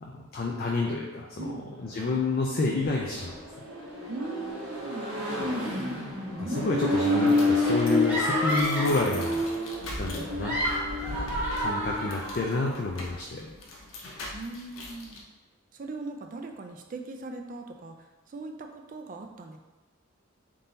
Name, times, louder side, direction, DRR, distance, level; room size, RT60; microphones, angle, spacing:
voice 1, 0.0-3.3 6.3-9.5 10.0-10.6 11.0-13.5, left 3 dB, 45° left, -2 dB, 0.4 m, -29 dB
Accelerating revving vroom, 1.9-12.3, left 2 dB, 70° right, 1.1 m, -30 dB
voice 2, 4.1-6.0 14.3-15.2 15.7-18.0 18.3-19.6, right 3 dB, 40° right, 4 dB, 0.4 m, -39 dB
sound 1, 6.6-15.2, left 1 dB, 85° left, 0.7 m, -41 dB
sound 2, 8.1-9.0 10.2-12.6, equal, 5° right, 0.9 m, -30 dB
3.7 x 2.7 x 3.9 m, 1.2 s
head